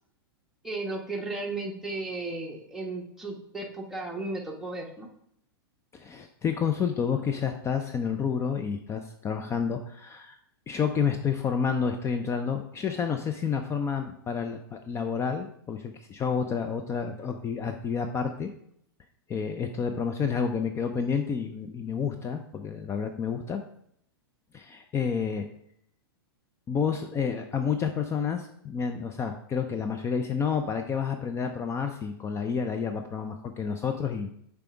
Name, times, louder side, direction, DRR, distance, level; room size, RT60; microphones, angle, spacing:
voice 1, 0.6-5.1, right 2 dB, 5° right, -1 dB, 1.2 m, -35 dB
voice 2, 5.9-10.4 10.7-18.5 19.3-23.6 24.5-25.5 26.7-34.3, left 6 dB, 20° left, 6 dB, 0.5 m, -29 dB
6.7 x 3.5 x 5.0 m, 0.70 s
hypercardioid pair, 105°, 13 cm